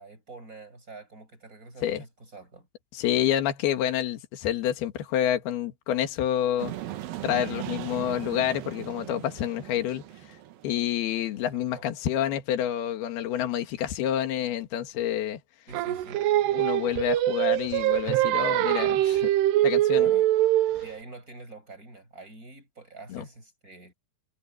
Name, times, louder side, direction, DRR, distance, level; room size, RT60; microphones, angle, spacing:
voice 1, 0.0-2.7 11.8-11.9 15.7-16.2 19.9-20.3 20.8-24.0, right 3 dB, 20° right, 6.9 m, -46 dB
voice 2, 2.9-6.7 7.2-10.0 10.6-15.4 16.5-19.3 19.6-20.1 23.1-23.3, left 10 dB, 75° left, 3.7 m, -28 dB
sound 1, 6.6-11.7, right 14 dB, 70° right, 2.9 m, -39 dB
Singing, 15.7-20.9, right 14 dB, 90° right, 3.0 m, -23 dB
omnidirectional pair, 4.6 m